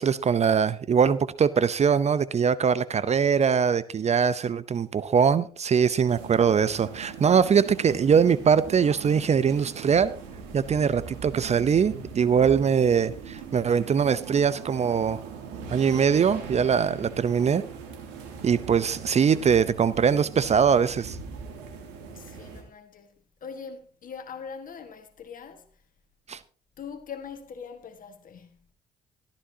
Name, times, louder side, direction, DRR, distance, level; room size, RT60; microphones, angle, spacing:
voice 1, 0.0-10.2 10.5-15.2 15.7-17.6 18.4-21.2 26.3-26.4, right 7 dB, 40° right, 0.7 m, -22 dB
sound 1, 6.1-22.6, right 6 dB, 80° right, 2.8 m, -40 dB
voice 2, 22.1-25.8 26.8-28.6, left 6 dB, 55° left, 1.6 m, -42 dB
14.5 x 13.0 x 2.8 m
hypercardioid pair, 50°, 17 cm